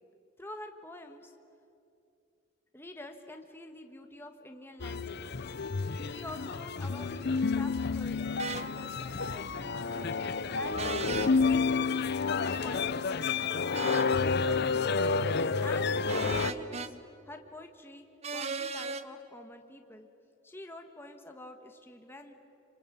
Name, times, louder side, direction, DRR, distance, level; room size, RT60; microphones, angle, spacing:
voice 1, 0.4-1.3 2.7-5.5 6.0-8.2 8.6-12.0 12.4-14.1 14.4-15.2 15.6-17.0 17.2-20.1 20.4-22.3, left 2 dB, 10° left, 4 dB, 1.5 m, -47 dB
sound 1, 4.8-16.5, left 4 dB, 55° left, 0.7 m, -30 dB
sound 2, 8.4-8.6 10.8-11.3 13.7-14.1 16.1-16.9 18.2-19.0, right 5 dB, 30° right, 0.9 m, -36 dB
27.0 x 25.5 x 8.5 m, 2.6 s
head